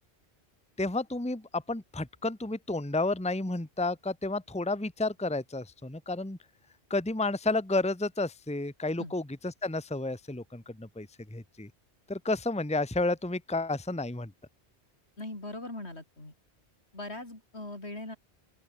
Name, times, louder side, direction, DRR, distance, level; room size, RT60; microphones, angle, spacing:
voice 1, 0.8-6.4 6.9-11.7 12.1-14.3, left 2 dB, 5° left, 1.2 m, -31 dB
voice 2, 15.2-16.3 16.9-18.2, left 2 dB, 75° left, 6.1 m, -40 dB
open air
omnidirectional pair, 1.1 m